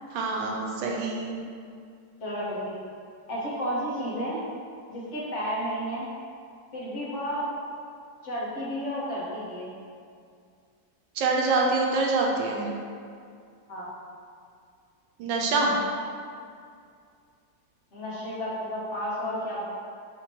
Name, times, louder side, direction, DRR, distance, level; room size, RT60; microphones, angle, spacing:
voice 1, 0.1-1.4 11.2-12.7 15.2-15.7, right 3 dB, 80° right, -1 dB, 1.3 m, -25 dB
voice 2, 2.2-2.8 3.3-4.4 4.9-6.1 6.7-7.5 8.2-9.7 13.7-13.9 17.9-19.6, equal, 45° left, -7 dB, 1.2 m, -32 dB
4.3 x 2.9 x 4.3 m, 2.3 s
omnidirectional pair, 2.1 m